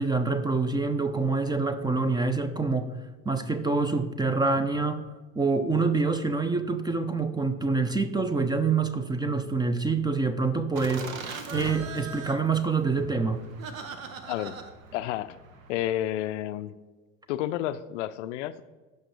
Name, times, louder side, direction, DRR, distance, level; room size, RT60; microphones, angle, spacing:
voice 1, 0.0-5.1 5.4-11.1 11.5-13.4, right 4 dB, 10° right, 11 dB, 0.5 m, -26 dB
Laughter, 10.8-15.9, right 4 dB, 80° right, 0.9 m, -40 dB
voice 2, 14.3-14.6 14.9-15.4 15.7-16.8 17.3-18.7, left 13 dB, 65° left, 14 dB, 0.5 m, -31 dB
15.0 x 5.7 x 3.1 m, 1.3 s
figure-of-eight pair, 65°, 40 cm